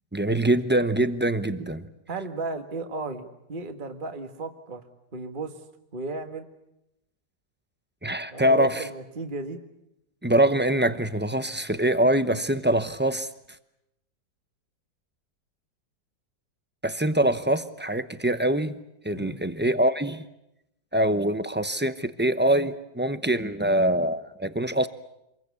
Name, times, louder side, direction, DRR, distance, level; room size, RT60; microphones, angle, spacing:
voice 1, 0.1-1.9 8.0-8.9 10.2-13.3 16.8-18.8 19.0-20.2 20.9-24.9, right 1 dB, 10° right, 0.5 m, -24 dB
voice 2, 2.1-4.8 5.1-5.5 5.9-6.4 8.3-9.6 19.1-19.4, right 3 dB, 30° right, 1.7 m, -34 dB
27.0 x 22.0 x 8.4 m
omnidirectional pair, 1.9 m